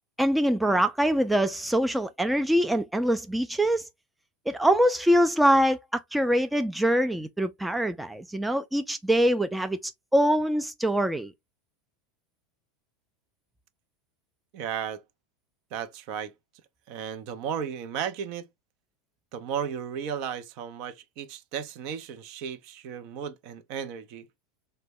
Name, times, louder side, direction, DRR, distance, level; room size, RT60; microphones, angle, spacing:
voice 1, 0.2-3.9 4.5-9.8 10.1-11.3, equal, 5° right, 0.3 m, -24 dB
voice 2, 14.5-15.0 15.7-16.3 16.9-18.5 19.3-24.3, right 8 dB, 55° right, 0.6 m, -34 dB
3.4 x 2.1 x 3.0 m
hypercardioid pair, 100°, 0 cm